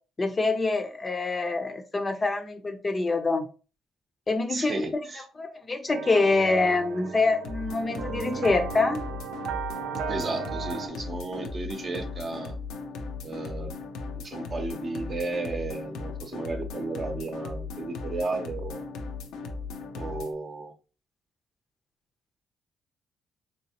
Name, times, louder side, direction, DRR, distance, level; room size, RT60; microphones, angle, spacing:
voice 1, 0.2-3.5 4.3-4.7 5.4-9.0, left 3 dB, 30° left, 0.5 m, -25 dB
voice 2, 4.5-5.2 10.1-12.6 13.2-13.7 14.2-18.9 20.0-20.7, right 3 dB, 40° right, 0.7 m, -33 dB
sound 1, 5.9-10.9, right 8 dB, 85° right, 0.5 m, -36 dB
sound 2, 7.4-20.3, left 4 dB, 90° left, 0.6 m, -37 dB
3.4 x 2.9 x 2.8 m
cardioid pair, 90°, 0 cm